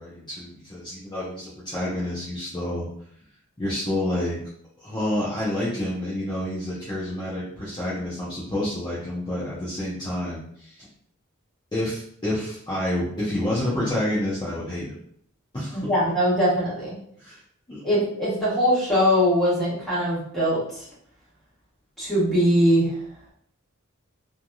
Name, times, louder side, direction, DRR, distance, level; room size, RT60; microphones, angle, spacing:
voice 1, 0.0-2.9 3.6-4.4 4.8-10.9 11.7-15.0 15.5-15.8 17.2-17.4 17.7-17.8, left 1 dB, 20° left, -9 dB, 0.7 m, -28 dB
voice 2, 15.7-16.9 17.8-20.9 22.0-22.9, equal, ahead, -10 dB, 1.4 m, -21 dB
3.2 x 2.6 x 2.3 m, 0.65 s
head